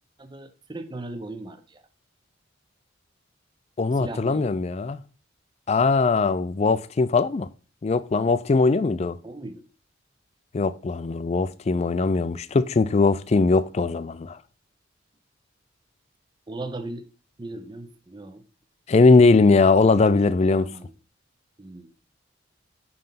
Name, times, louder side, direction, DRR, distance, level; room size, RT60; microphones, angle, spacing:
voice 1, 0.2-1.8 4.0-4.5 9.2-9.6 16.5-17.1 17.4-18.4 19.8-20.9 21.6-21.9, right 2 dB, 20° right, 0.6 m, -38 dB
voice 2, 3.8-5.0 5.7-7.5 7.8-9.2 10.5-14.4 18.9-20.7, left 3 dB, 35° left, 0.3 m, -20 dB
5.5 x 5.2 x 5.6 m
head